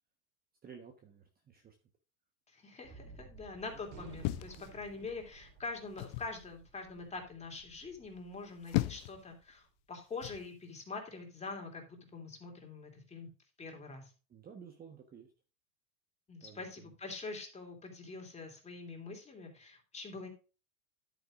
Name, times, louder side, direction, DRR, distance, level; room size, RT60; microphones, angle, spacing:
voice 1, 0.6-1.7 3.0-3.3 3.7-3.8 14.3-15.3 16.4-16.9, right 7 dB, 20° right, 4 dB, 1.2 m, -53 dB
voice 2, 2.5-13.3 13.6-14.1 16.3-20.3, left 3 dB, 15° left, 2 dB, 2.8 m, -45 dB
Gunshot gunfire, 2.8-9.4, right 4 dB, 45° right, 3.7 m, -55 dB
sound 1, 4.2-5.3 6.0-6.4 8.3-9.2 10.2-10.5, left 19 dB, 45° left, 0.6 m, -36 dB
10.5 x 9.1 x 2.5 m, 0.33 s
supercardioid pair, 130°, 45 cm